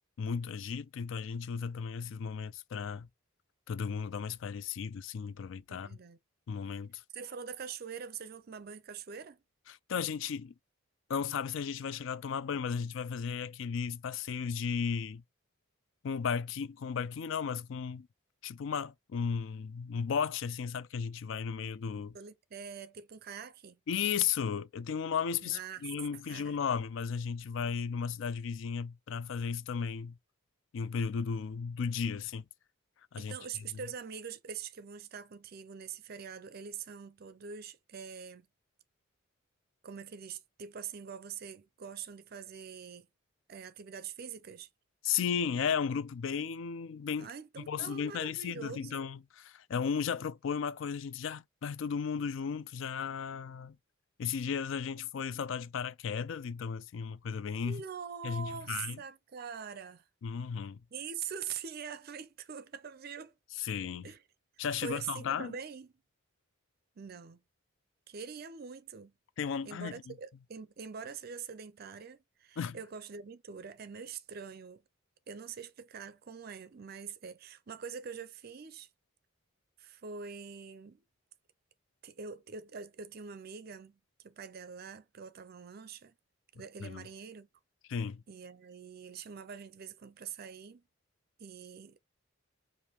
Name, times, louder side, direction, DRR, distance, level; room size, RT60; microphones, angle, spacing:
voice 1, 0.2-3.1 3.7-5.9 6.5-7.0 9.7-10.5 11.1-15.2 16.0-18.1 18.4-22.2 23.9-30.2 30.7-32.4 33.1-33.4 45.0-47.3 47.7-53.8 54.2-57.8 58.2-59.0 60.2-60.8 63.6-64.1 64.6-65.6 69.4-70.1 72.6-72.8 86.8-87.1 87.9-88.2, left 6 dB, 65° left, 0.3 m, -35 dB
voice 2, 5.7-6.2 7.1-9.4 22.1-23.8 25.4-25.9 26.3-26.6 33.2-38.5 39.8-43.1 43.5-44.7 47.2-49.0 57.6-60.0 60.9-63.3 64.0-64.2 64.8-65.9 67.0-67.4 68.1-69.1 69.6-74.8 75.3-78.9 79.8-81.0 82.0-86.1 86.5-87.5 88.3-90.8 91.4-92.0, right 6 dB, 45° right, 0.5 m, -44 dB
5.0 x 2.6 x 2.9 m
head